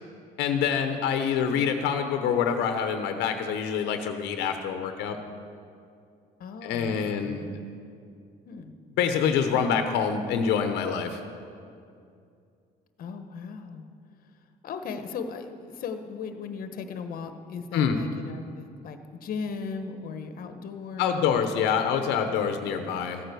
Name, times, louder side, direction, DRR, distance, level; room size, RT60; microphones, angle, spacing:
voice 1, 0.4-5.2 6.6-7.6 9.0-11.2 17.7-18.0 21.0-23.2, left 7 dB, 90° left, 7 dB, 0.9 m, -26 dB
voice 2, 6.4-7.6 8.4-8.7 13.0-13.9 14.6-21.4, left 5 dB, 60° left, 8 dB, 1.1 m, -37 dB
14.5 x 9.1 x 6.8 m, 2.4 s
cardioid pair, 110°, 17 cm